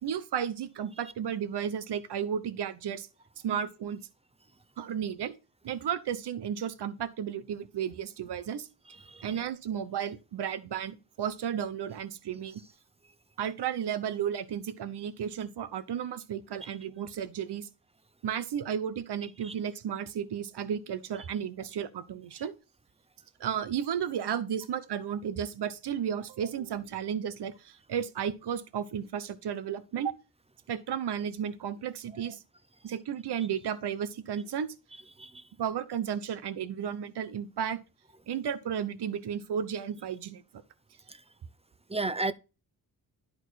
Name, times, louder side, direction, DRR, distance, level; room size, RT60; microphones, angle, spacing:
voice 1, 0.0-3.1 3.4-4.0 4.8-5.4 5.6-8.7 9.2-12.6 13.4-17.7 18.2-22.6 23.4-30.1 30.7-32.4 32.8-34.7 35.6-37.8 38.3-40.4, right 8 dB, 70° right, 1.0 m, -33 dB
voice 2, 41.9-42.3, right 2 dB, 15° right, 0.7 m, -32 dB
11.5 x 4.4 x 4.1 m
cardioid pair, 95°, 42 cm